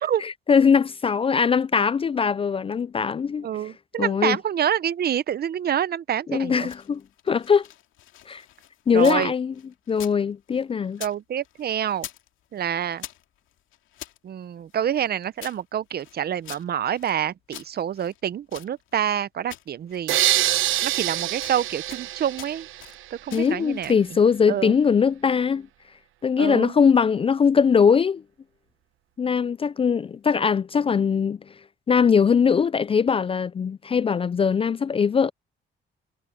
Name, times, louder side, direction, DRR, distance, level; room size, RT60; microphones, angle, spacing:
voice 1, 0.2-3.5 4.0-4.4 6.3-7.0 7.3-7.6 8.3-8.4 8.9-9.5 9.9-11.0 23.3-25.7 26.2-28.2 29.2-31.4 31.9-35.3, left 6 dB, 30° left, 0.3 m, -21 dB
voice 2, 3.4-6.7 8.9-9.3 11.0-12.1 12.5-13.0 14.2-20.2 20.8-22.7 23.2-23.9 24.5-24.8 26.4-26.7, right 10 dB, 50° right, 0.7 m, -27 dB
sound 1, 6.4-9.3 9.5-11.2 11.4-12.3 12.5-14.2 14.7-17.2 17.5-19.2 19.5-20.1 20.4-21.2 21.4-22.1 22.4-23.0 23.3-24.0, left 13 dB, 90° left, 2.3 m, -44 dB
sound 2, 20.1-23.1, right 14 dB, 85° right, 0.9 m, -25 dB
cardioid pair, 90°, 20 cm